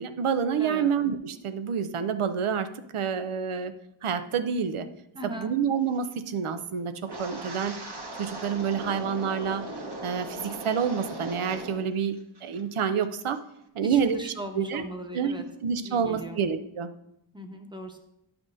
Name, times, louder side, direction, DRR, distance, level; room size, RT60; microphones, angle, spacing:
voice 1, 0.0-3.7 4.0-4.9 5.2-7.8 8.2-9.6 10.0-13.4 13.7-14.9 15.1-15.3 15.6-16.9, right 7 dB, 85° right, 10 dB, 0.6 m, -28 dB
voice 2, 0.6-0.9 5.1-5.5 13.8-15.4 15.8-16.4 17.3-18.0, right 1 dB, 10° right, 4 dB, 0.9 m, -39 dB
Wind, 7.0-11.9 12.2-12.6 13.0-13.3, right 2 dB, 55° right, 1.2 m, -38 dB
10.5 x 5.9 x 2.5 m, 0.83 s
wide cardioid pair, 70°, 49 cm